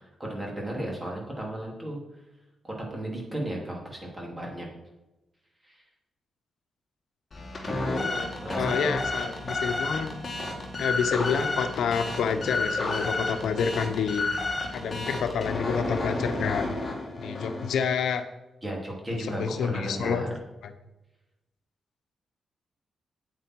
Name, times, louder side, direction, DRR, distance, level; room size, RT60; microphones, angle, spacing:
voice 1, 0.2-2.0 2.6-4.7 5.6-5.8 7.6-8.9 9.4-9.6 18.6-20.3, right 1 dB, 15° right, -1 dB, 3.1 m, -35 dB
sound 1, 7.3-17.9, left 2 dB, 30° left, 2.4 m, -31 dB
voice 2, 7.9-8.3 8.6-10.1 10.8-14.3 14.7-16.6 17.2-18.2 19.1-20.2 20.6-20.7, left 6 dB, 85° left, 8 dB, 0.9 m, -28 dB
9.0 x 9.0 x 4.7 m, 0.98 s
wide cardioid pair, 130°, 0 cm